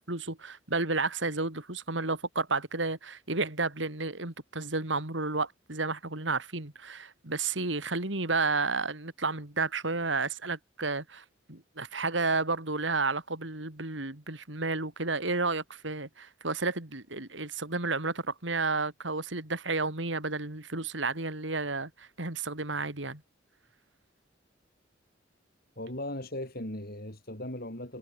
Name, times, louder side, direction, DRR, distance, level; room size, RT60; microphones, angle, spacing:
voice 1, 0.0-23.2, right 3 dB, 75° right, 3.5 m, -32 dB
voice 2, 25.8-28.0, left 1 dB, 50° left, 6.8 m, -38 dB
head